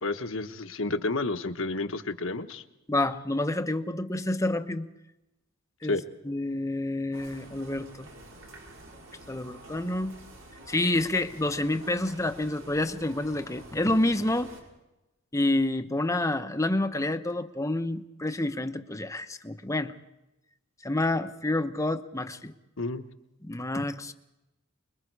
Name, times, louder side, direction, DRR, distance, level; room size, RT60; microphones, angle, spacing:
voice 1, 0.0-2.6 5.9-6.0 22.8-23.0, left 2 dB, 70° left, 7 dB, 1.2 m, -30 dB
voice 2, 2.9-4.9 5.8-6.0 6.2-8.1 9.3-10.2 10.7-14.5 15.3-19.9 20.8-22.5 23.4-24.1, left 1 dB, 15° left, 8 dB, 0.9 m, -28 dB
sound 1, 7.1-14.6, right 1 dB, 85° right, 5.3 m, -48 dB
25.5 x 22.0 x 4.7 m, 0.97 s
head